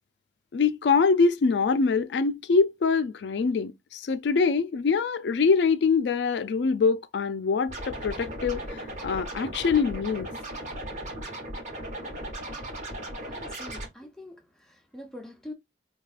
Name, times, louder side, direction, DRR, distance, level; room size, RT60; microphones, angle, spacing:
voice 1, 0.5-8.6 9.0-10.3, left 5 dB, 85° left, 0.4 m, -24 dB
Scratching (performance technique), 7.7-13.9, right 1 dB, 40° right, 1.2 m, -37 dB
voice 2, 13.2-15.5, left 1 dB, 5° left, 0.7 m, -44 dB
4.6 x 2.3 x 2.4 m
head